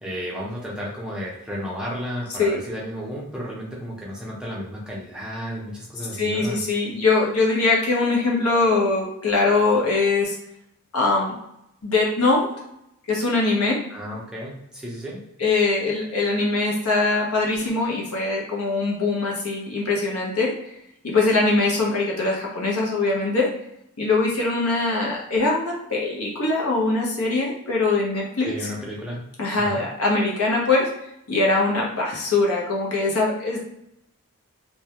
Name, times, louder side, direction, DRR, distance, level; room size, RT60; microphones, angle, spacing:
voice 1, 0.0-6.6 13.9-15.2 28.4-29.2 29.6-29.9, equal, 5° right, -5 dB, 0.4 m, -33 dB
voice 2, 6.2-10.4 10.9-11.4 11.8-12.5 13.1-13.8 15.4-20.5 21.0-23.5 24.0-28.5 29.4-30.9 31.3-33.6, left 3 dB, 80° left, -2 dB, 0.7 m, -22 dB
2.3 x 2.0 x 2.8 m, 0.81 s
head